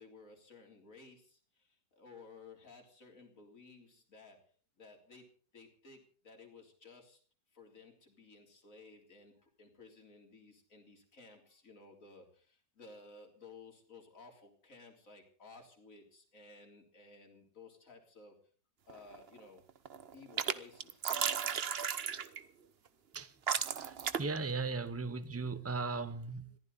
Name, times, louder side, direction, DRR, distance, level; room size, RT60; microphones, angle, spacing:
voice 1, 0.0-4.4 4.8-5.3 5.5-7.2 7.5-18.4 18.9-19.6 20.1-21.0 22.8-23.0, left 3 dB, 45° left, 3.7 m, -56 dB
sound 1, 18.9-19.4 19.7-20.5 20.8-22.4 23.1-23.2 23.5-24.4, right 7 dB, 50° right, 0.8 m, -34 dB
voice 2, 23.1-26.6, right 4 dB, 20° right, 0.3 m, -38 dB
22.0 x 15.0 x 4.1 m
omnidirectional pair, 2.0 m